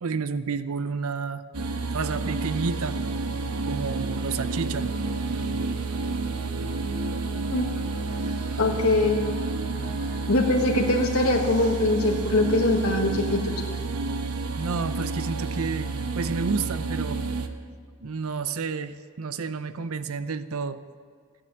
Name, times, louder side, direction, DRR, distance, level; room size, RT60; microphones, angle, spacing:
voice 1, 0.0-1.4 1.9-3.0 3.6-4.9 9.7-10.0 14.6-17.2 18.0-20.8, right 4 dB, 70° right, 13 dB, 0.6 m, -30 dB
sound 1, 1.5-17.5, right 3 dB, 85° right, 1.0 m, -30 dB
voice 2, 8.6-9.2 10.3-13.6, left 2 dB, 70° left, 0 dB, 1.6 m, -22 dB
14.5 x 9.8 x 7.7 m, 2.1 s
head